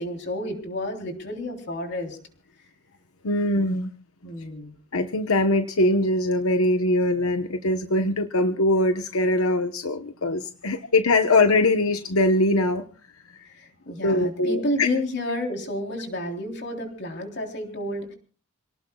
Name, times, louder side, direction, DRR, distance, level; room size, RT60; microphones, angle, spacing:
voice 1, 0.0-2.2 4.2-4.7 13.6-18.1, left 1 dB, 55° left, 3 dB, 3.6 m, -30 dB
voice 2, 3.2-3.9 4.9-12.8 14.0-14.9, left 2 dB, 90° left, 7 dB, 1.1 m, -22 dB
28.5 x 18.5 x 2.3 m, 0.38 s
head